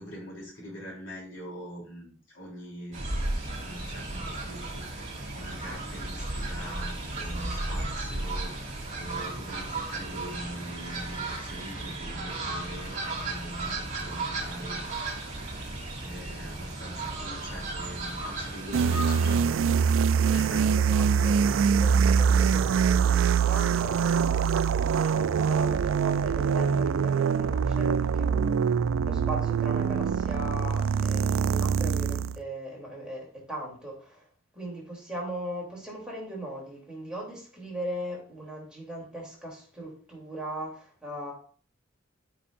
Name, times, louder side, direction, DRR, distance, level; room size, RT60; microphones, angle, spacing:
voice 1, 0.0-3.0 3.3-15.5 16.0-20.0 20.3-20.8, equal, 70° left, 3.2 m, -43 dB
Fowl, 2.9-19.4, right 2 dB, 40° right, 2.5 m, -34 dB
sound 1, 18.7-32.4, right 6 dB, 80° right, 0.4 m, -24 dB
voice 2, 20.8-24.7 25.0-28.6 29.0-34.3 34.5-41.3, right 1 dB, 5° right, 3.1 m, -39 dB
13.5 x 5.7 x 2.6 m
head